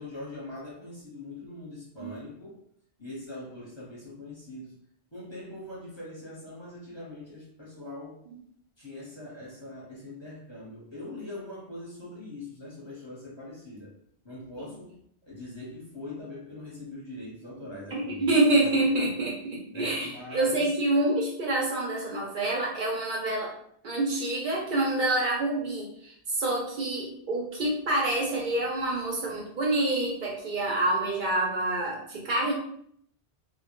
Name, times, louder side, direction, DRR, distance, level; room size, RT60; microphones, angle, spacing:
voice 1, 0.0-2.6 3.0-4.8 5.1-8.2 8.8-13.9 14.2-19.0 19.7-21.0, left 2 dB, 30° left, -6 dB, 0.8 m, -42 dB
voice 2, 17.9-23.5 23.8-32.5, right 2 dB, 60° right, -2 dB, 0.6 m, -27 dB
2.1 x 2.1 x 2.9 m, 0.67 s
omnidirectional pair, 1.1 m